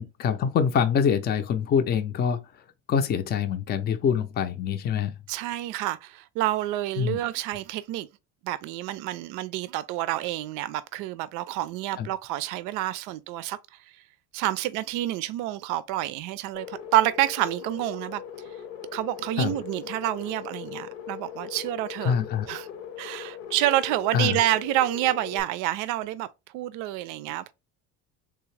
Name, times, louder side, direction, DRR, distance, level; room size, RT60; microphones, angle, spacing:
voice 1, 0.2-2.4 2.9-5.1 7.0-7.2 12.0-12.1 19.4-19.5 22.0-22.5 24.1-24.4, left 7 dB, 30° left, 0.5 m, -25 dB
voice 2, 5.3-8.1 8.4-13.6 14.3-18.2 18.9-22.1 22.5-22.7 23.0-26.3 26.5-27.5, right 14 dB, 75° right, 0.5 m, -28 dB
sound 1, 16.5-25.4, left 9 dB, 80° left, 0.9 m, -40 dB
3.6 x 2.8 x 3.2 m
cardioid pair, 130°, 31 cm